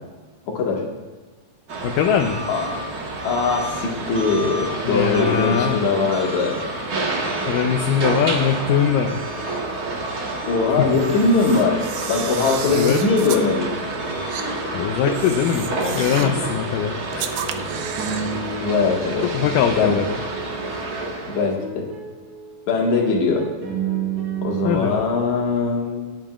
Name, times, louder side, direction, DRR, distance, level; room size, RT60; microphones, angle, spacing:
voice 1, 0.5-0.9 2.5-2.6 3.2-6.6 10.5-11.8 12.1-13.8 15.8-16.4 17.5-17.7 18.6-19.3 19.7-20.0 21.3-21.9 22.7-23.5 24.4-26.2, left 4 dB, 60° left, 0 dB, 2.8 m, -21 dB
sound 1, 1.7-21.5, right 2 dB, 65° right, 0.9 m, -29 dB
voice 2, 1.8-2.4 4.8-5.8 7.5-9.2 10.8-11.2 12.7-13.0 14.7-17.3 19.3-20.2 24.6-24.9, left 8 dB, 80° left, 4 dB, 2.1 m, -21 dB
sound 2, 6.8-24.7, right 5 dB, 40° right, 5.6 m, -35 dB
Camera, 10.9-13.5 14.3-14.5 15.1-16.4 17.1-18.4, right 9 dB, 90° right, 2.4 m, -33 dB
25.5 x 9.1 x 2.4 m, 1.4 s
omnidirectional pair, 4.1 m